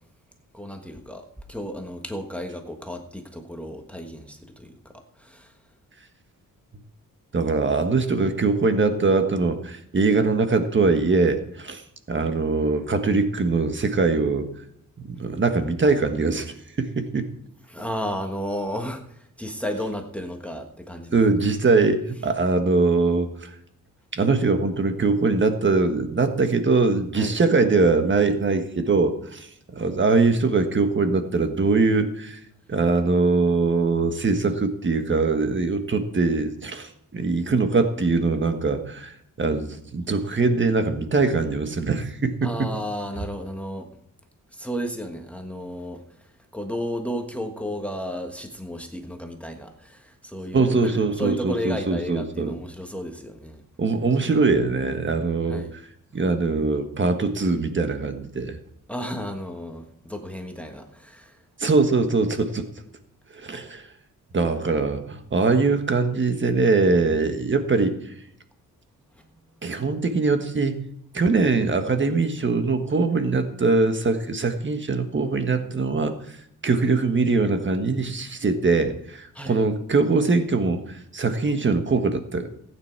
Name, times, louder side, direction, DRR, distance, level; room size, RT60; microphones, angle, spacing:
voice 1, 0.5-5.5 17.7-21.2 27.1-27.4 42.4-43.9 44.5-53.6 55.5-55.7 58.9-61.4 69.1-69.7 79.3-79.6, equal, 5° left, 4 dB, 1.4 m, -33 dB
voice 2, 7.3-11.8 12.1-14.5 15.0-17.3 21.1-23.5 24.1-32.4 32.7-42.5 50.5-52.5 53.8-55.6 56.1-58.6 61.6-62.7 63.3-63.8 64.3-68.0 69.6-70.8 71.1-76.2 76.6-82.5, right 3 dB, 35° right, 7 dB, 1.5 m, -22 dB
14.5 x 9.4 x 4.6 m, 0.70 s
cardioid pair, 100°, 34 cm